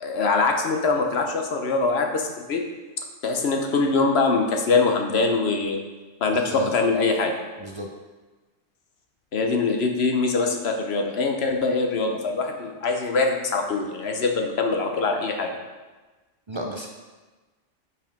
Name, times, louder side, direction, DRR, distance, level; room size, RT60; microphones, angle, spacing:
voice 1, 0.0-2.6 3.2-5.8 6.2-7.3 9.3-15.6, left 3 dB, 60° left, 3 dB, 1.0 m, -23 dB
voice 2, 6.3-6.7 7.6-7.9 16.5-16.9, right 1 dB, 35° right, 0 dB, 0.4 m, -33 dB
5.6 x 5.3 x 5.2 m, 1.3 s
omnidirectional pair, 1.3 m